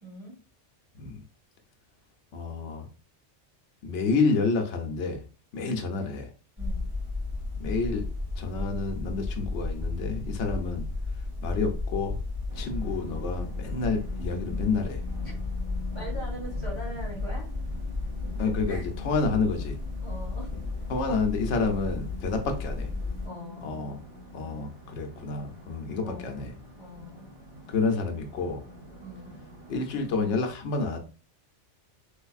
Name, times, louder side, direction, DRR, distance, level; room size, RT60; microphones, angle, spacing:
voice 1, 0.0-0.3 5.6-5.8 6.6-6.9 15.2-15.3 15.9-17.4 18.7-18.8 20.0-20.5 23.2-23.8 25.9-27.3 29.0-29.3, right 1 dB, 25° right, -6 dB, 1.2 m, -42 dB
voice 2, 2.3-2.9 3.8-5.2 5.5-6.3 7.6-8.1 8.4-10.8 11.4-12.2 12.5-15.0 18.4-19.8 20.9-22.9 23.6-24.0 24.3-26.5 27.7-28.6 29.7-31.0, left 4 dB, 75° left, 4 dB, 1.0 m, -29 dB
sound 1, 6.6-23.3, left 3 dB, 40° right, 1.8 m, -33 dB
sound 2, 12.5-30.4, left 2 dB, 10° left, 1.5 m, -45 dB
3.4 x 3.1 x 2.3 m, 0.35 s
omnidirectional pair, 1.2 m